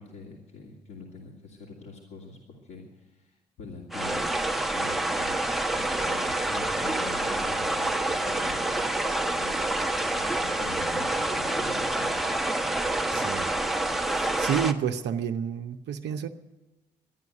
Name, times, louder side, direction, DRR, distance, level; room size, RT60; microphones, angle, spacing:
voice 1, 0.0-4.2 4.7-5.5 5.8-12.4, left 4 dB, 65° left, -3 dB, 2.7 m, -44 dB
sound 1, 3.9-14.7, right 2 dB, ahead, 1.2 m, -27 dB
voice 2, 13.1-13.5 14.0-16.3, right 8 dB, 60° right, 5 dB, 0.8 m, -30 dB
13.0 x 10.5 x 9.4 m, 1.1 s
figure-of-eight pair, 45°, 20 cm